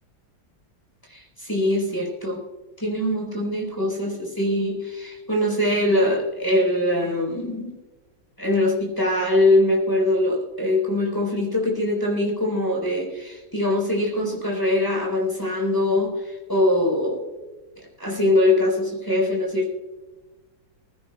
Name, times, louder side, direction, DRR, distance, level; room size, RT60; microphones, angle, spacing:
voice 1, 1.1-2.4 2.8-7.8 8.4-17.2 17.8-19.7, left 1 dB, 10° left, -3 dB, 3.9 m, -22 dB
20.5 x 16.0 x 2.3 m, 1.2 s
omnidirectional pair, 2.2 m